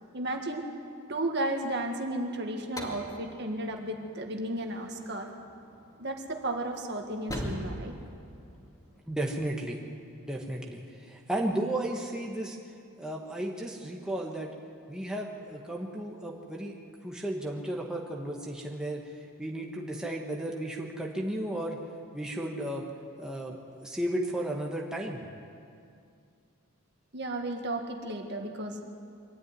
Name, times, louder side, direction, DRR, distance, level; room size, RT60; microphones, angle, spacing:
voice 1, 0.1-0.6 1.1-5.3 6.0-8.0 27.1-28.8, right 1 dB, 50° right, 3 dB, 1.9 m, -33 dB
sound 1, 2.6-9.0, equal, 15° left, 2.5 m, -42 dB
voice 2, 9.1-9.8 10.3-12.6 13.0-14.5 14.9-16.8 17.0-19.0 19.4-21.8 22.1-22.9 23.2-25.2, right 1 dB, 5° right, -1 dB, 1.4 m, -34 dB
23.5 x 13.0 x 9.6 m, 2.4 s
head